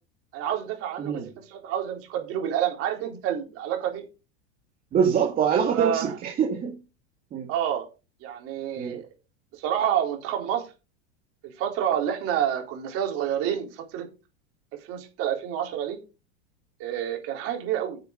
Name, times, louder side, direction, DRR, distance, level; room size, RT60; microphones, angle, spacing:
voice 1, 0.3-4.0 5.7-6.1 7.5-7.9 8.2-9.1 9.6-10.6 11.4-14.1 14.9-16.0 16.8-18.0, right 10 dB, 45° right, 3 dB, 4.1 m, -28 dB
voice 2, 4.9-6.8 7.3-7.5 8.8-9.0, right 7 dB, 25° right, 0 dB, 2.1 m, -24 dB
9.8 x 6.9 x 5.4 m, 0.30 s
supercardioid pair, 155°, 33 cm